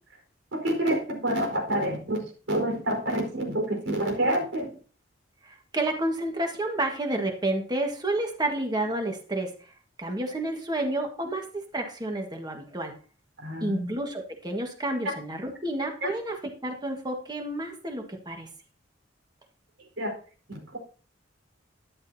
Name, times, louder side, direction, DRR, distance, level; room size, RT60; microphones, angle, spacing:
voice 1, 0.5-4.7 13.4-13.9 16.0-16.1 20.0-20.1 20.5-20.8, right 1 dB, 85° right, 1 dB, 4.7 m, -28 dB
voice 2, 5.4-9.5 10.0-12.9 13.6-16.4 16.6-18.5, right 1 dB, 20° right, 3 dB, 1.7 m, -30 dB
13.0 x 11.0 x 2.8 m, 0.40 s
head